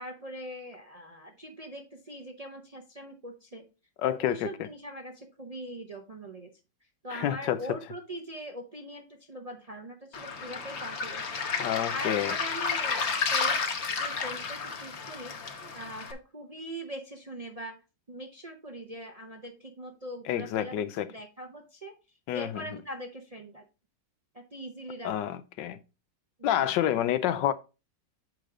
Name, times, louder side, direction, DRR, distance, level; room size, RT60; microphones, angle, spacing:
voice 1, 0.0-3.7 4.0-6.5 7.0-11.3 11.9-13.6 14.0-17.8 18.1-22.0 22.3-23.6 24.3-25.3 26.5-26.7, equal, 50° right, 0.4 m, -42 dB
voice 2, 4.0-4.5 7.1-7.6 11.6-12.3 20.3-21.1 22.3-22.6 25.0-25.8 26.4-27.5, left 11 dB, 80° left, 1.3 m, -28 dB
Waves surf, 10.1-16.1, left 5 dB, 45° left, 1.1 m, -31 dB
7.8 x 5.0 x 3.7 m
omnidirectional pair, 2.0 m